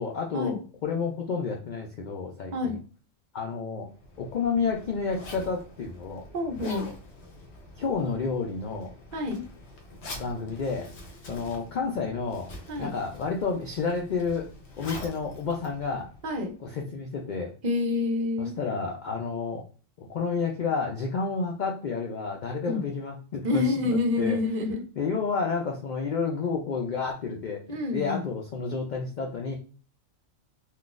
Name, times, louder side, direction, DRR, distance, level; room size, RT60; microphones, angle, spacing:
voice 1, 0.0-2.8 3.3-3.9 4.2-6.2 7.8-8.9 10.2-10.9 11.3-12.5 12.8-14.5 14.8-16.1 16.6-17.5 18.4-19.6 20.0-24.4 25.0-29.5, left 5 dB, 80° left, 1 dB, 0.4 m, -30 dB
Zipper (clothing), 3.9-16.5, left 1 dB, 60° left, 0.9 m, -45 dB
voice 2, 6.3-6.9 9.1-9.4 12.7-12.9 16.2-16.5 17.6-18.5 22.6-22.8 23.4-24.8 27.7-28.3, left 3 dB, 50° right, 4 dB, 0.6 m, -27 dB
3.8 x 2.3 x 2.4 m, 0.39 s
omnidirectional pair, 1.3 m